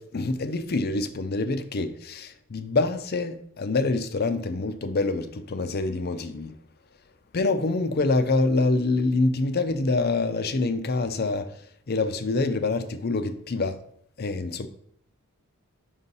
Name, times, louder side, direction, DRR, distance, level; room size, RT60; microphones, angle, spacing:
voice 1, 0.0-6.5 7.3-11.5 11.9-13.8 14.2-14.7, left 3 dB, 45° left, 0.5 m, -26 dB
5.6 x 5.4 x 4.0 m
head